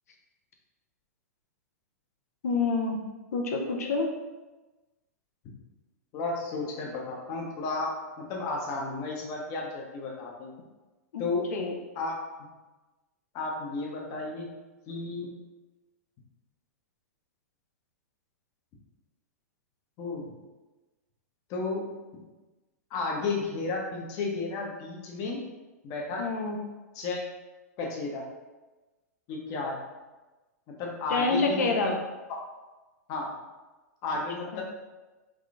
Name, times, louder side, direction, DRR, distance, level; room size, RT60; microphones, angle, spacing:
voice 1, 2.4-3.0 3.3-4.1 11.1-11.2 11.5-11.7 26.2-26.6 31.1-31.9 34.5-34.6, left 3 dB, 70° left, 2 dB, 0.5 m, -27 dB
voice 2, 6.1-7.9 8.2-10.5 11.2-11.4 12.0-12.1 13.3-14.5 14.9-15.3 20.0-20.3 21.5-21.9 22.9-25.4 25.8-26.2 26.9-27.2 27.8-28.2 29.3-29.8 30.8-31.9 33.1-33.3 34.0-34.6, left 3 dB, 40° left, -1 dB, 0.8 m, -33 dB
3.5 x 3.2 x 2.5 m, 1.2 s
hypercardioid pair, 110°, 9 cm